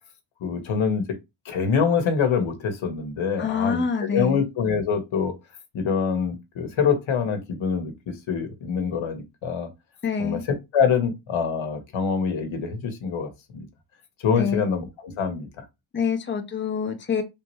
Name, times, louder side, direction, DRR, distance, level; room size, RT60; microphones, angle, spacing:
voice 1, 0.4-1.2 1.4-5.3 5.7-9.7 10.2-13.7 14.2-15.5, left 6 dB, 70° left, 1.2 m, -25 dB
voice 2, 3.4-4.4 10.0-10.4 14.4-14.7 15.9-17.2, left 6 dB, 25° left, 0.8 m, -26 dB
3.5 x 2.8 x 3.1 m
cardioid pair, 85°, 49 cm